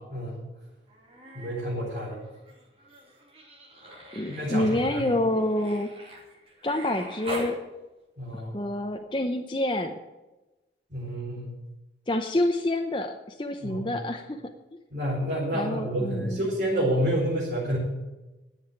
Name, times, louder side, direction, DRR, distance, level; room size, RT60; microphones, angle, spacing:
voice 1, 0.1-0.4 1.3-2.2 4.3-5.1 8.2-8.5 10.9-11.5 13.6-13.9 14.9-17.8, equal, 50° right, -7 dB, 4.4 m, -29 dB
Human voice, 0.9-1.6 1.9-7.6 9.1-9.2, equal, 30° right, 3.1 m, -42 dB
voice 2, 4.1-5.9 6.6-7.6 8.5-9.9 12.1-13.1 13.4-14.4 15.5-16.5, left 1 dB, 25° left, 4 dB, 0.7 m, -27 dB
11.0 x 7.8 x 9.0 m, 1.1 s
head